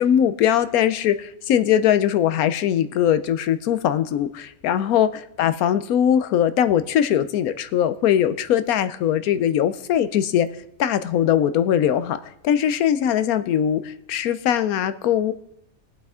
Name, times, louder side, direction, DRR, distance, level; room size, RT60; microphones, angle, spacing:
voice 1, 0.0-10.5 10.8-12.2 12.4-15.3, left 10 dB, 85° left, 13 dB, 1.1 m, -21 dB
20.0 x 7.7 x 3.6 m, 0.76 s
omnidirectional pair, 1.5 m